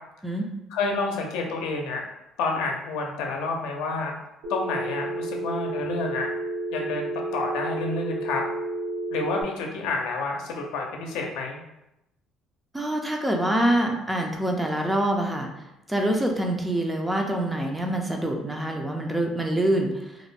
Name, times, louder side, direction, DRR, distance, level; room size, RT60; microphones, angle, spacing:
voice 1, 0.7-2.1 2.4-4.1 4.5-6.3 6.7-8.4 9.1-11.6, left 3 dB, 85° left, 1 dB, 0.5 m, -29 dB
Telephone, 4.4-9.4, right 2 dB, 80° right, 0.7 m, -31 dB
voice 2, 12.7-15.5 15.9-20.2, right 1 dB, 10° right, 2 dB, 0.4 m, -25 dB
2.4 x 2.0 x 3.2 m, 0.88 s
cardioid pair, 120°, 0 cm